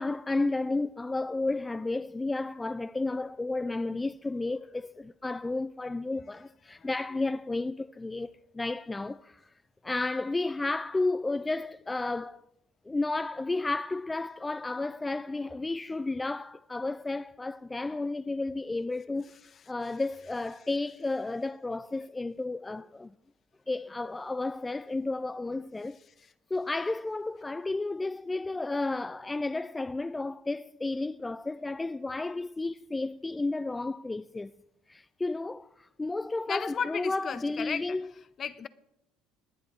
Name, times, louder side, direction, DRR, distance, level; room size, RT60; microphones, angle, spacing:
voice 1, 0.0-9.5 9.8-12.4 12.9-23.1 23.7-26.0 26.5-34.5 34.9-38.1, left 2 dB, 15° left, 0.3 m, -32 dB
voice 2, 36.5-38.0 38.4-38.7, left 7 dB, 45° left, 0.8 m, -35 dB
21.0 x 10.5 x 3.0 m
hypercardioid pair, 65°, 0 cm